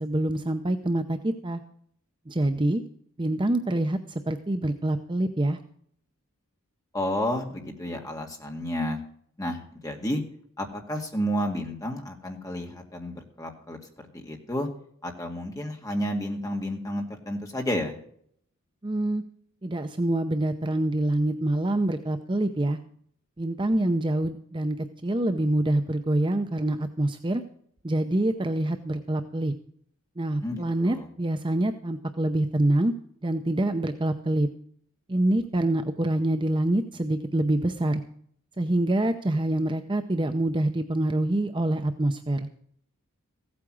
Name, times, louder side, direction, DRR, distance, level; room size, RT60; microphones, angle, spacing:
voice 1, 0.0-1.6 2.3-2.8 3.2-5.6 18.8-19.2 19.6-22.8 23.4-24.8 25.0-27.4 27.8-29.5 30.2-32.9 33.2-34.5 35.1-38.0 38.6-42.5, right 1 dB, 20° right, 8 dB, 0.6 m, -26 dB
voice 2, 6.9-9.0 9.4-10.2 10.6-13.8 14.1-14.7 15.0-18.0 30.4-31.1, equal, 15° left, 2 dB, 2.0 m, -31 dB
15.5 x 8.6 x 6.2 m, 0.62 s
head